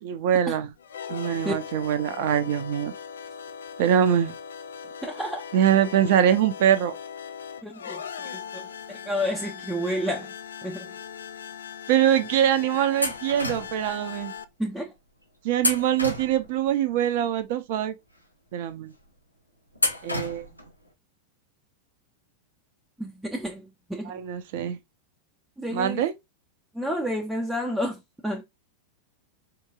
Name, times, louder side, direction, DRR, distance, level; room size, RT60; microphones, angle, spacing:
voice 1, 0.0-0.7 1.1-2.9 3.8-4.3 5.5-6.9 11.9-14.3 15.4-17.9 18.5-18.9 20.0-20.5 24.1-24.8 25.7-26.1, right 10 dB, 50° right, 0.5 m, -23 dB
sound 1, 0.7-14.4, left 7 dB, 65° left, 0.4 m, -39 dB
voice 2, 5.0-5.4 7.6-8.0 8.3-10.3 10.6-10.9 14.6-14.9 23.0-24.2 25.6-26.0 26.7-28.4, equal, 5° right, 0.5 m, -30 dB
sound 2, 13.0-13.9 15.6-16.7 19.8-20.7, left 1 dB, 90° left, 0.7 m, -29 dB
4.4 x 2.8 x 2.3 m
figure-of-eight pair, 90°, 0 cm